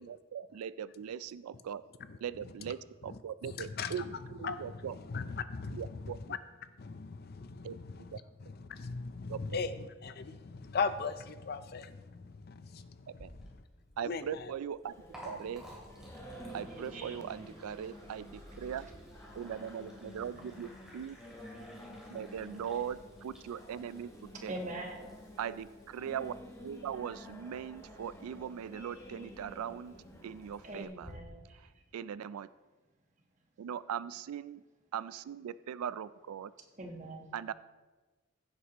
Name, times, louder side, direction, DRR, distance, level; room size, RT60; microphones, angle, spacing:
voice 1, 0.3-1.8 2.2-4.9 5.7-6.4 7.6-7.8 8.1-8.2 9.3-9.4 13.2-13.3 14.0-14.9 15.2-15.6 16.5-18.9 19.4-21.2 22.1-24.1 24.4-24.6 25.4-26.3 26.6-30.0 30.2-31.1 31.5-32.5 33.6-34.6 34.9-36.5 37.3-37.5, right 8 dB, 90° right, 16 dB, 0.3 m, -40 dB
voice 2, 3.1-13.5 14.0-14.5, left 5 dB, 45° left, 11 dB, 0.5 m, -39 dB
Liquid, 13.1-31.1, equal, 5° right, 2.4 m, -57 dB
Singing, 14.8-30.8, equal, 15° left, 1.0 m, -51 dB
voice 3, 24.5-25.1 30.6-31.6 36.8-37.3, right 1 dB, 35° right, 2 dB, 1.2 m, -43 dB
15.5 x 8.1 x 3.0 m, 1.3 s
head